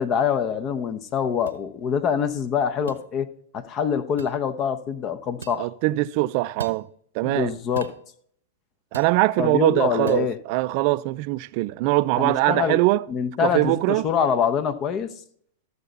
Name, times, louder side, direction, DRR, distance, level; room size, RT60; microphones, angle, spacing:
voice 1, 0.0-3.3 3.5-5.7 7.2-7.9 9.4-10.4 12.2-12.8 13.1-15.1, left 7 dB, 35° left, 0.9 m, -25 dB
sound 1, 1.5-1.6 2.9-3.1 4.2-4.4 5.4-5.6 6.6-6.8 7.8-8.0 8.9-9.2 10.1-10.3, right 5 dB, 80° right, 0.8 m, -37 dB
voice 2, 5.6-6.9 7.1-7.5 8.9-13.1 13.4-14.1, right 19 dB, 50° right, 0.4 m, -22 dB
13.5 x 6.7 x 4.0 m
hypercardioid pair, 110°, 0 cm